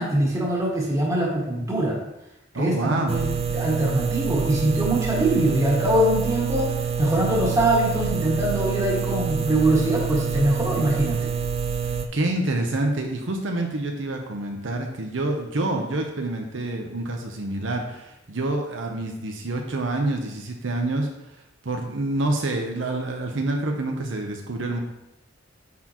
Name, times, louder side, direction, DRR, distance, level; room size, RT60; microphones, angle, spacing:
voice 1, 0.0-2.0 2.6-11.3, right 1 dB, 15° right, -4 dB, 1.9 m, -23 dB
voice 2, 2.5-3.2 12.1-21.1 21.6-24.8, right 2 dB, 85° right, 2 dB, 0.9 m, -27 dB
sound 1, 3.1-12.1, right 6 dB, 35° right, 0.5 m, -27 dB
9.4 x 4.4 x 3.0 m, 0.89 s
head